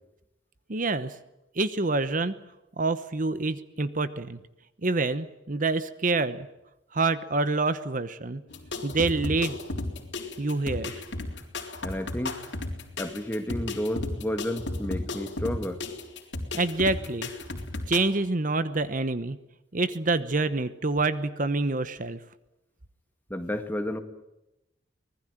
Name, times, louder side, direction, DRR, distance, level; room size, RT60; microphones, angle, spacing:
voice 1, 0.7-1.1 1.6-2.3 2.8-4.4 4.8-6.5 6.9-8.4 8.8-9.6 10.4-10.9 16.5-17.3 17.9-19.4 19.7-22.2, right 3 dB, 45° right, 13 dB, 1.0 m, -27 dB
sound 1, 8.5-18.0, left 2 dB, 65° left, 3.7 m, -34 dB
voice 2, 11.8-12.4 13.0-15.8 23.3-24.0, left 1 dB, 10° left, 7 dB, 2.0 m, -31 dB
25.0 x 20.0 x 9.0 m, 0.92 s
head